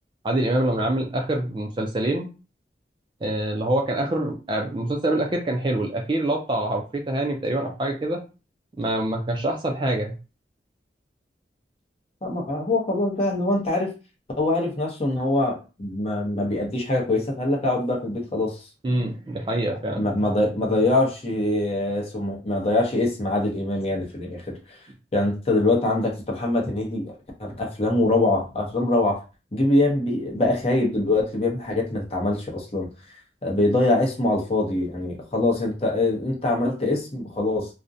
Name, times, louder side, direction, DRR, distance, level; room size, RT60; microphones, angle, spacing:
voice 1, 0.2-2.3 3.2-8.2 8.8-10.2 18.8-20.1, right 1 dB, 30° right, 2 dB, 0.3 m, -25 dB
voice 2, 12.2-13.9 14.4-18.6 19.9-24.8 25.1-27.1 27.4-29.2 29.5-32.9 33.4-37.7, left 2 dB, 35° left, 0 dB, 0.7 m, -23 dB
2.4 x 2.1 x 2.6 m, 0.32 s
head